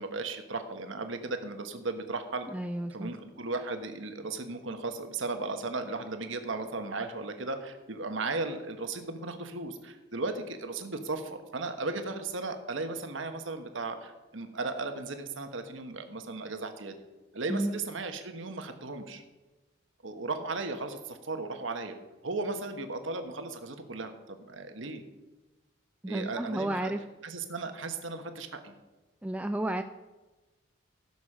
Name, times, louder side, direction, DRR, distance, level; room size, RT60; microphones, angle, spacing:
voice 1, 0.0-2.5 2.9-17.0 17.3-19.2 20.0-21.9 22.2-25.0 26.0-26.9 27.2-28.7, right 3 dB, 75° right, 7 dB, 1.3 m, -36 dB
voice 2, 2.5-3.1 17.5-17.8 26.0-27.0 29.2-29.8, right 1 dB, 5° right, 7 dB, 0.3 m, -31 dB
16.0 x 7.1 x 5.0 m, 1.2 s
head